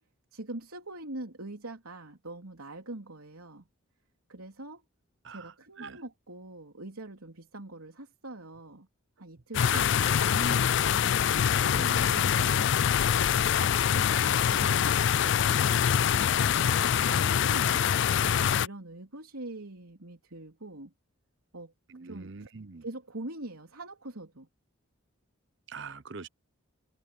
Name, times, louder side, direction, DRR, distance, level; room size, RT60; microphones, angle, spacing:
voice 1, 0.3-3.7 4.3-4.8 5.3-8.9 9.2-11.1 11.8-12.7 13.4-17.8 18.2-20.9 21.5-21.7 22.0-22.5 22.8-24.5, right 2 dB, 80° right, 3.5 m, -43 dB
sound 1, 9.5-18.7, left 8 dB, 55° left, 0.3 m, -24 dB
voice 2, 9.7-10.1 11.6-12.1 21.9-22.8 25.7-26.3, right 4 dB, 55° right, 0.8 m, -42 dB
head